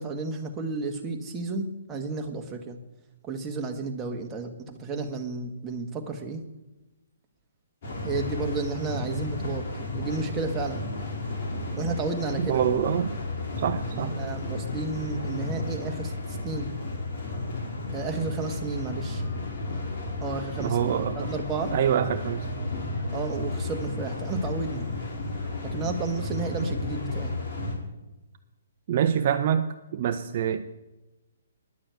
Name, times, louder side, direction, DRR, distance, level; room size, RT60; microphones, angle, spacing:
voice 1, 0.0-2.8 3.2-6.4 8.0-9.7 9.9-10.8 11.8-12.7 13.9-16.7 17.9-19.2 20.2-21.7 23.1-24.9 25.6-27.4, right 3 dB, 15° right, 2 dB, 1.6 m, -32 dB
sound 1, 7.8-27.8, left 2 dB, 55° left, 3.6 m, -33 dB
voice 2, 12.5-13.1 13.6-14.1 20.6-21.3 21.7-22.5 28.9-30.6, right 9 dB, 50° right, 8 dB, 0.7 m, -25 dB
10.5 x 6.8 x 8.1 m, 1.0 s
hypercardioid pair, 140°, 0 cm